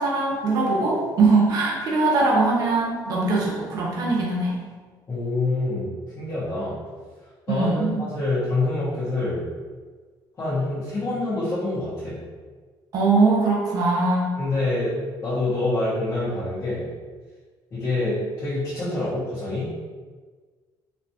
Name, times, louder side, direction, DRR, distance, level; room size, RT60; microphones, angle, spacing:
voice 1, 0.0-4.6 7.5-8.0 12.9-14.4, right 3 dB, 45° right, -4 dB, 0.9 m, -21 dB
voice 2, 5.1-6.8 7.5-7.8 8.1-9.4 10.4-12.1 14.4-14.9 15.2-16.9 17.7-19.7, left 2 dB, 30° left, -13 dB, 1.4 m, -26 dB
4.2 x 3.0 x 2.8 m, 1.5 s
cardioid pair, 155°, 8 cm